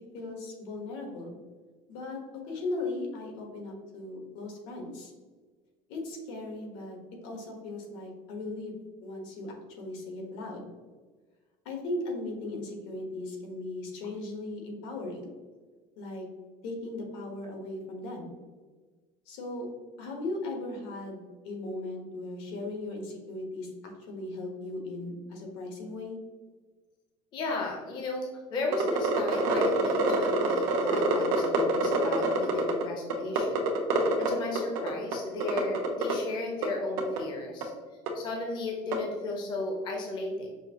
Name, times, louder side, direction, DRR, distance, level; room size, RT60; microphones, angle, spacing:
voice 1, 0.1-1.4 1.9-5.1 5.9-7.0 7.2-8.7 9.0-10.7 11.6-15.3 16.0-16.3 16.6-18.3 19.3-19.7 20.0-26.2, left 2 dB, 80° left, 2 dB, 1.2 m, -37 dB
voice 2, 27.3-33.6 34.2-37.7 38.1-40.5, left 2 dB, 30° left, 1 dB, 0.5 m, -35 dB
sound 1, 28.7-32.8 33.1-34.3 34.6-35.2 35.4-36.1 36.6-36.7 37.0-37.2 37.6-37.7 38.1-38.2 38.9-39.0, right 3 dB, 85° right, 0.8 m, -26 dB
5.6 x 2.5 x 2.8 m, 1.4 s
cardioid pair, 175°, 16 cm